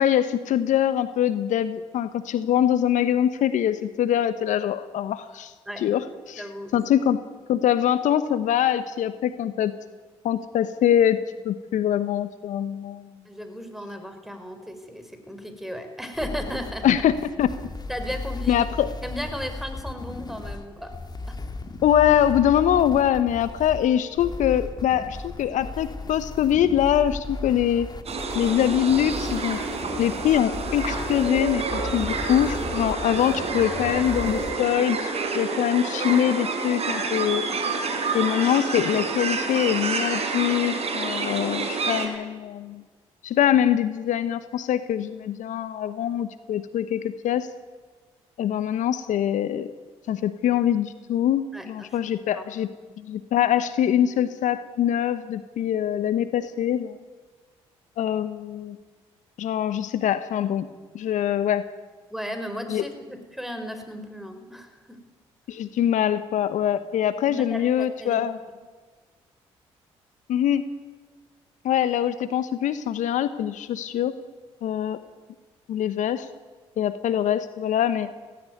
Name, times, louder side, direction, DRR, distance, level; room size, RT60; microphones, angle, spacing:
voice 1, 0.0-6.5 6.7-7.2 7.5-9.7 10.2-13.1 16.8-17.5 18.5-18.9 21.8-27.9 28.3-29.6 30.0-35.1 35.3-37.5 38.1-42.8 43.2-47.5 48.4-49.7 50.1-52.7 53.0-57.0 58.0-58.8 59.4-60.7 60.9-61.7 62.7-62.8 65.5-68.4 70.3-70.6 71.6-74.2 74.6-75.0 75.7-76.3 76.8-78.1, left 10 dB, 65° left, 12 dB, 1.0 m, -23 dB
voice 2, 6.4-6.7 13.2-16.9 17.9-18.6 19.0-20.9 21.3-21.4 51.5-51.9 52.3-52.5 62.1-65.0 67.3-68.2 68.5-68.6, equal, ahead, 7 dB, 5.0 m, -35 dB
sound 1, 16.1-34.5, left 3 dB, 30° left, 2.2 m, -36 dB
sound 2, 28.1-42.1, right 4 dB, 50° right, 4.5 m, -28 dB
17.5 x 15.5 x 9.4 m, 1.4 s
hypercardioid pair, 50°, 13 cm